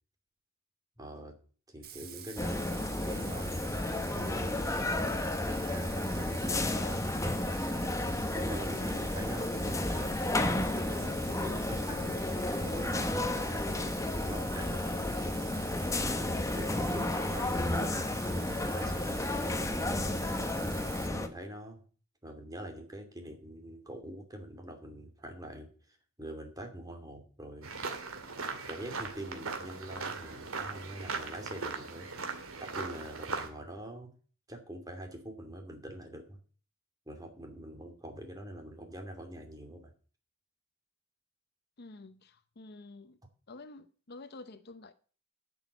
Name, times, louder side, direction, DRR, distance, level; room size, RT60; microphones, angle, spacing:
voice 1, 1.0-1.3 1.7-3.6 4.1-7.0 8.4-15.1 16.5-20.4 20.7-21.8 22.2-27.7 28.7-32.1 32.6-34.1 34.5-36.4 37.1-39.9, right 1 dB, 15° right, 2.6 m, -44 dB
Bathtub (filling or washing), 1.8-21.1, right 9 dB, 45° right, 1.4 m, -47 dB
sound 1, 2.4-21.3, left 1 dB, 15° left, 1.0 m, -32 dB
sound 2, 27.6-33.5, right 4 dB, 85° right, 2.1 m, -39 dB
voice 2, 41.8-43.2 43.5-44.9, left 3 dB, 50° left, 0.7 m, -49 dB
11.0 x 6.3 x 8.2 m
head